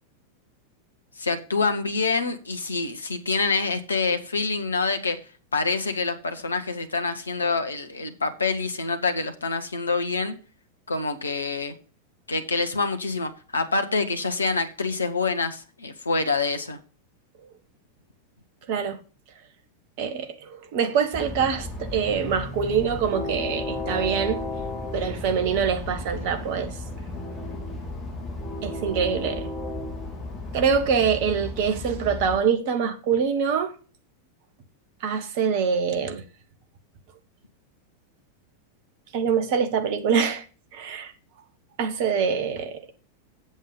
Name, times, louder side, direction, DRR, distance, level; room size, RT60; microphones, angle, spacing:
voice 1, 1.2-5.2 5.5-10.4 10.9-11.7 12.3-16.8, left 4 dB, 75° left, 1.3 m, -26 dB
voice 2, 18.7-19.0 20.0-24.4 24.9-26.8 28.6-29.5 30.5-33.7 35.0-36.2 39.1-40.4 40.7-41.1 41.8-42.8, right 6 dB, 50° right, 1.5 m, -24 dB
Train, 21.1-32.4, left 2 dB, 20° left, 3.7 m, -34 dB
8.1 x 7.6 x 5.1 m
figure-of-eight pair, 90°, 0 cm